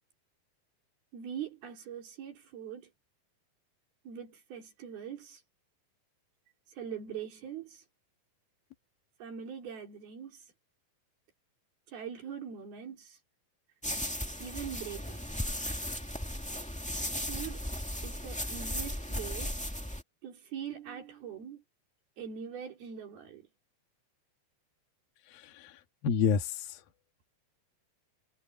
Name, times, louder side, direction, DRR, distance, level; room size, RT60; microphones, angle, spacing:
voice 1, 1.1-2.9 4.1-5.4 6.7-7.8 9.2-10.5 11.9-13.2 14.4-15.2 17.3-17.6 18.0-19.6 20.2-21.6 22.2-23.4, right 8 dB, 90° right, 5.9 m, -42 dB
sound 1, 13.8-20.0, equal, 5° left, 0.8 m, -36 dB
voice 2, 25.2-26.8, left 6 dB, 75° left, 3.6 m, -30 dB
omnidirectional pair, 4.2 m